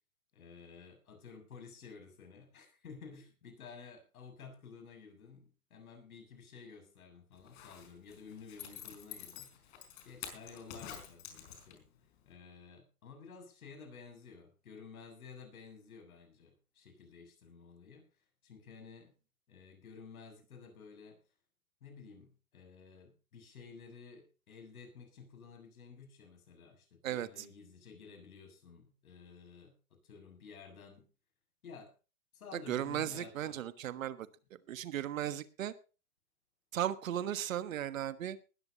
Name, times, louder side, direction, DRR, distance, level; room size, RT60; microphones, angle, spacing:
voice 1, 0.3-11.9 12.3-18.0 18.4-19.1 19.5-21.2 21.8-31.1 31.6-31.9 32.3-33.7, left 5 dB, 65° left, 6 dB, 6.9 m, -53 dB
Zipper (clothing), 7.4-12.0 12.3-12.4, left 9 dB, 40° left, 5.0 m, -48 dB
voice 2, 27.0-27.5 32.5-34.3 34.7-35.7 36.7-38.4, right 11 dB, 60° right, 13 dB, 1.4 m, -36 dB
20.0 x 13.5 x 2.9 m, 0.34 s
hypercardioid pair, 130°, 46 cm